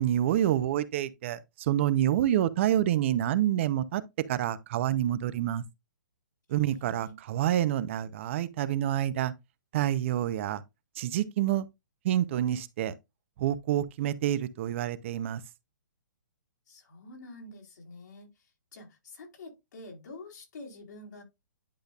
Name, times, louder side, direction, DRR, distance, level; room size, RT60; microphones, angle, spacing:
voice 1, 0.0-4.0 4.3-5.6 6.5-9.3 9.7-10.6 11.0-11.7 12.0-12.9 13.4-15.4, right 12 dB, 40° right, 0.7 m, -27 dB
voice 2, 6.5-7.2 16.7-18.3 18.7-21.2, left 2 dB, 75° left, 4.0 m, -47 dB
10.5 x 5.1 x 2.4 m
hypercardioid pair, 150°, 10 cm